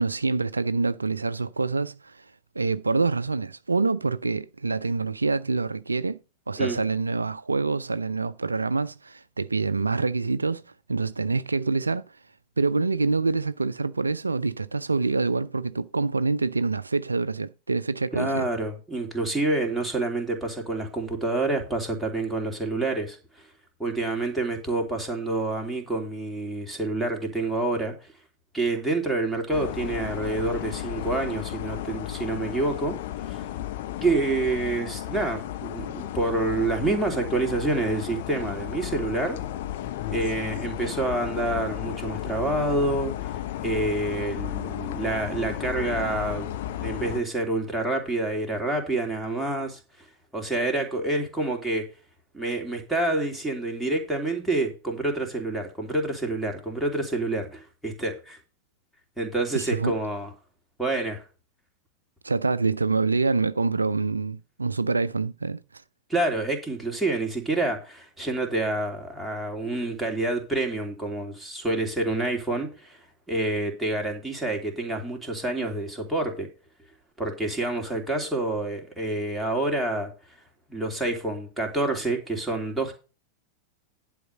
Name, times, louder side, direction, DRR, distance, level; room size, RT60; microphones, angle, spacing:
voice 1, 0.0-2.3 2.6-6.2 6.5-10.6 10.9-12.0 12.6-18.5 59.5-59.9 62.2-65.6, right 3 dB, 80° right, 0.4 m, -26 dB
voice 2, 18.1-23.5 23.8-28.1 28.5-33.4 34.0-39.4 40.1-43.3 43.6-50.1 50.3-51.9 52.3-58.4 59.2-60.3 60.8-61.2 66.1-73.0 73.3-76.5 77.2-80.1 80.7-82.9, right 2 dB, ahead, 3.0 m, -28 dB
sound 1, 29.5-47.2, left 12 dB, 55° left, 1.0 m, -34 dB
11.0 x 4.8 x 6.4 m
figure-of-eight pair, 90°, 0 cm